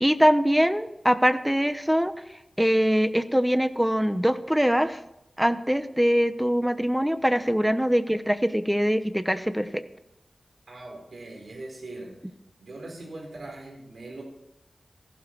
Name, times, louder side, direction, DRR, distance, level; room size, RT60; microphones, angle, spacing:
voice 1, 0.0-2.1 2.6-5.0 5.4-9.8, equal, 5° right, 11 dB, 0.9 m, -23 dB
voice 2, 10.7-12.2 12.6-14.2, right 2 dB, 85° right, 0 dB, 4.2 m, -41 dB
15.0 x 12.0 x 4.6 m, 0.83 s
wide cardioid pair, 85°, 0 cm